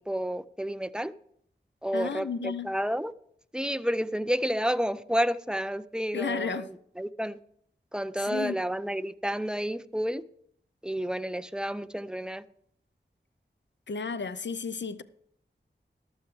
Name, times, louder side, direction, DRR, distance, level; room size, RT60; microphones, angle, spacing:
voice 1, 0.1-1.1 1.8-3.1 3.5-6.7 7.0-7.4 7.9-10.2 10.8-12.4, equal, 5° right, 0.5 m, -30 dB
voice 2, 1.9-2.8 6.1-6.7 8.2-8.6 13.9-15.0, left 5 dB, 70° left, 0.6 m, -33 dB
14.0 x 11.5 x 3.3 m
wide cardioid pair, 70°, 19 cm